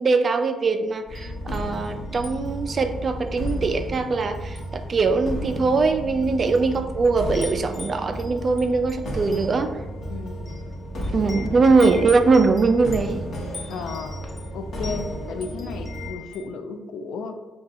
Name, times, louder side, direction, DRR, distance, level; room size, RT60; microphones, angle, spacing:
voice 1, 0.0-9.7 11.1-13.2, right 4 dB, 40° right, 8 dB, 0.3 m, -21 dB
Wind chime, 1.0-2.3 2.7-2.9 3.5-4.2 4.5-4.8 5.5-5.6 6.3-6.8 7.0-16.5, left 3 dB, 40° left, 0.7 m, -42 dB
sound 1, 1.1-16.1, equal, 60° left, 0.9 m, -33 dB
voice 2, 10.1-10.6 11.2-11.9 13.7-14.2 14.5-17.3, left 5 dB, 80° left, 7 dB, 0.3 m, -34 dB
2.7 x 2.3 x 4.0 m, 1.1 s
cardioid pair, 90°, 0 cm